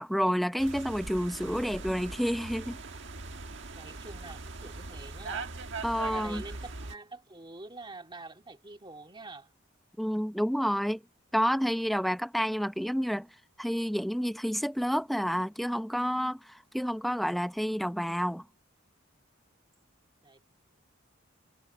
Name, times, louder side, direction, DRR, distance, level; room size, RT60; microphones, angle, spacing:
voice 1, 0.0-2.8 5.8-6.4 10.0-11.0 11.3-13.3 13.6-18.5, equal, ahead, 0.8 m, -29 dB
sound 1, 0.6-6.9, right 3 dB, 65° right, 1.6 m, -41 dB
voice 2, 3.8-5.5 6.1-9.5 20.2-20.4, right 3 dB, 25° right, 2.1 m, -46 dB
head